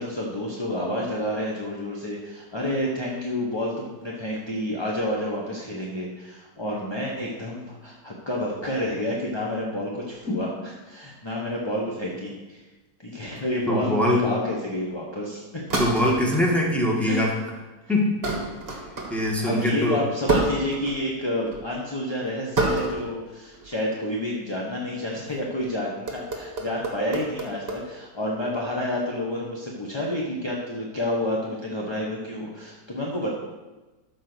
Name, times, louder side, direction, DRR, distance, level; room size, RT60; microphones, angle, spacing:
voice 1, 0.0-12.6 13.0-15.6 17.0-17.2 19.4-33.3, left 1 dB, 20° left, -3 dB, 0.8 m, -29 dB
sound 1, 13.3-13.7 15.7-16.5 17.0-17.4 18.2-19.4 20.3-21.1 21.4-21.7 22.6-23.1 23.5-23.7 25.4-25.6 26.1-27.8, right 2 dB, 35° right, 1.6 m, -28 dB
voice 2, 13.7-14.3 15.8-17.3 17.9-18.2 19.1-20.0, left 1 dB, ahead, -3 dB, 1.8 m, -22 dB
13.0 x 4.6 x 6.1 m, 1.2 s
omnidirectional pair, 1.9 m